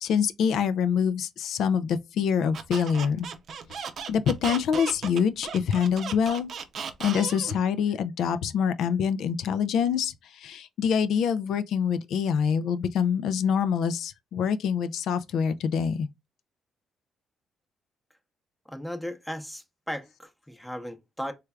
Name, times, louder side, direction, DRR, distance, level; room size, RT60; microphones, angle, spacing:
voice 1, 0.0-3.3 3.7-6.5 7.0-16.1, left 7 dB, 75° left, 0.3 m, -25 dB
Squeak, 2.5-7.6, right 6 dB, 60° right, 0.6 m, -36 dB
voice 2, 18.7-21.3, equal, 5° left, 0.7 m, -36 dB
3.3 x 3.3 x 2.3 m
cardioid pair, 90°, 0 cm